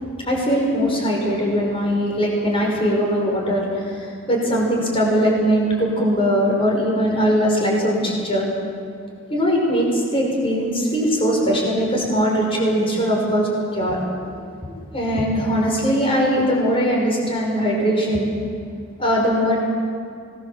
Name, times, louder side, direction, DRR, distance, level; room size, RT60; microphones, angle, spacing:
voice 1, 0.0-8.5 9.3-14.0 14.9-18.3 19.0-19.6, equal, 30° left, -2 dB, 5.8 m, -20 dB
25.5 x 20.0 x 7.4 m, 2.4 s
head